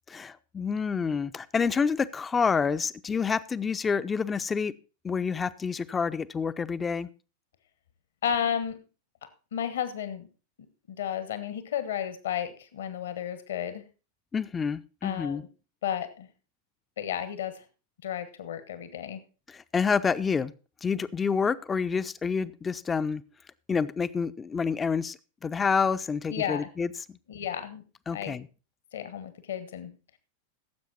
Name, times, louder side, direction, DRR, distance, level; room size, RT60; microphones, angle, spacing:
voice 1, 0.1-4.7 5.0-7.1 14.3-15.4 19.5-20.5 20.8-23.2 23.7-25.2 25.4-27.2 28.1-28.5, left 5 dB, 15° left, 14 dB, 0.6 m, -28 dB
voice 2, 8.2-8.8 9.2-10.3 10.9-13.8 15.0-15.5 15.8-16.3 17.0-17.6 18.0-19.2 26.3-26.7 27.3-27.8 28.1-28.4 28.9-29.9, left 9 dB, 60° left, 12 dB, 1.2 m, -33 dB
16.0 x 7.6 x 4.1 m, 0.34 s
figure-of-eight pair, 90°, 0 cm